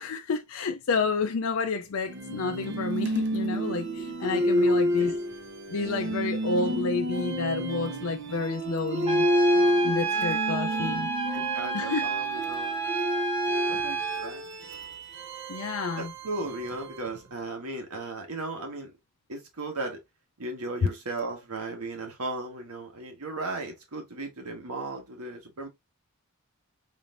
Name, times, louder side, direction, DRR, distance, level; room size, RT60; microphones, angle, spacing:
voice 1, 0.0-5.1 5.7-9.3 9.8-11.1 11.7-12.1 13.7-13.8 15.5-16.1, left 4 dB, 70° left, 0.4 m, -30 dB
sound 1, 2.1-17.2, equal, 50° right, 0.6 m, -29 dB
voice 2, 4.5-5.2 10.3-11.0 11.3-12.8 13.7-14.4 16.0-18.9 19.3-20.0 20.4-25.7, right 2 dB, 85° right, 1.4 m, -36 dB
Trumpet, 9.1-14.3, right 5 dB, 25° right, 1.2 m, -30 dB
4.0 x 3.2 x 2.5 m
head